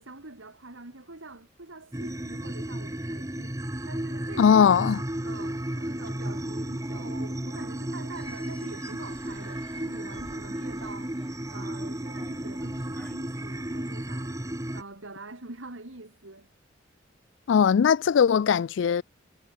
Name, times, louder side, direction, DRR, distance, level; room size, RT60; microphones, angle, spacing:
voice 1, 0.0-3.6 3.8-4.6 4.9-11.2 11.5-16.5, right 2 dB, 80° right, 2.5 m, -45 dB
sound 1, 1.9-14.8, right 1 dB, 15° right, 1.1 m, -34 dB
voice 2, 4.4-5.0 17.5-19.0, left 7 dB, 70° left, 0.3 m, -20 dB
sound 2, 8.1-13.2, left 1 dB, 5° left, 1.6 m, -53 dB
head